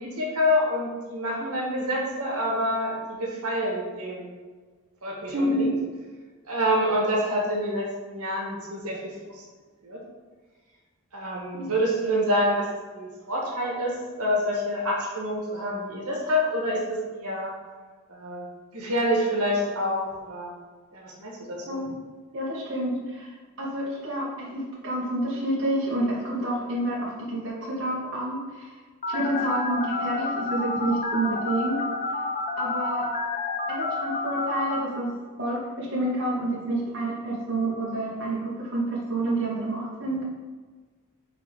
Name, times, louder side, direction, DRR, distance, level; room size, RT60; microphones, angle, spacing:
voice 1, 0.0-4.3 5.0-5.7 6.5-9.4 9.8-10.0 11.1-17.5 18.1-18.4 18.7-20.5 20.9-21.8, equal, 90° right, -2 dB, 1.5 m, -27 dB
voice 2, 5.3-5.7 11.5-11.7 21.7-22.1 22.3-23.3 23.6-28.8 29.1-31.8 32.6-33.1 33.7-35.1 35.4-40.2, right 1 dB, 60° right, -6 dB, 1.1 m, -28 dB
Telephone, 29.0-34.8, left 3 dB, 35° left, 0.6 m, -29 dB
6.0 x 3.4 x 4.7 m, 1.4 s
head